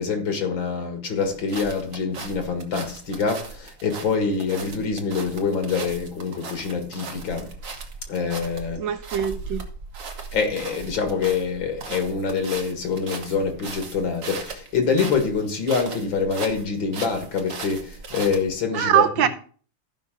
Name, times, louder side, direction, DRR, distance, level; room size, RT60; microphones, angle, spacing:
voice 1, 0.0-7.5 8.1-8.8 10.3-19.3, left 5 dB, 65° left, 2.6 m, -25 dB
sound 1, 1.2-18.6, right 4 dB, 45° right, 1.4 m, -38 dB
voice 2, 8.8-9.7 18.7-19.3, right 10 dB, 75° right, 1.2 m, -22 dB
14.5 x 5.7 x 3.8 m
omnidirectional pair, 2.3 m